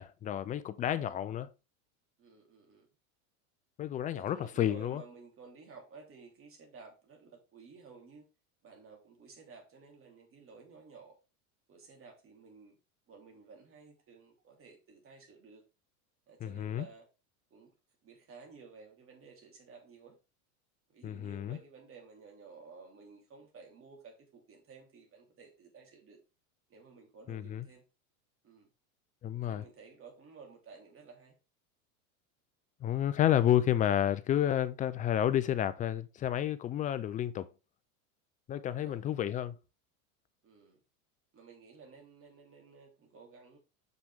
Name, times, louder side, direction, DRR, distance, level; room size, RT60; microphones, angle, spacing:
voice 1, 0.0-1.5 3.8-5.0 16.4-16.9 21.0-21.6 27.3-27.7 29.2-29.6 32.8-37.5 38.5-39.5, left 11 dB, 20° left, 0.3 m, -30 dB
voice 2, 0.8-1.1 2.2-2.9 4.1-8.2 8.6-11.1 11.7-12.8 13.1-15.6 16.3-17.1 17.5-17.7 18.0-20.1 20.9-26.2 26.7-27.8 28.4-28.7 29.4-31.4 34.4-34.6 38.6-39.0 40.4-40.8 41.3-43.6, right 5 dB, 30° right, 3.1 m, -54 dB
6.5 x 6.1 x 3.4 m
supercardioid pair, 120°, 43 cm